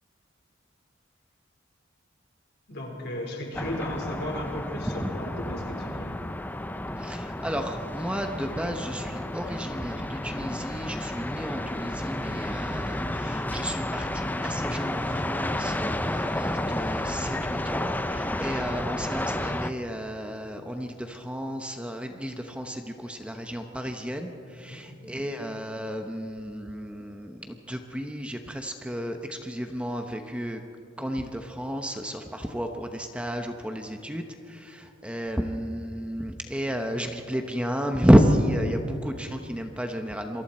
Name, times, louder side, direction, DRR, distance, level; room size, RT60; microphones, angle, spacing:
voice 1, 2.7-6.2 24.7-24.8, left 1 dB, 55° left, 1 dB, 4.2 m, -36 dB
sound 1, 3.5-19.7, left 1 dB, 10° left, 0.6 m, -31 dB
voice 2, 7.0-30.6 31.0-40.4, equal, 5° right, 5 dB, 0.9 m, -30 dB
27.5 x 23.0 x 4.4 m, 2.6 s
head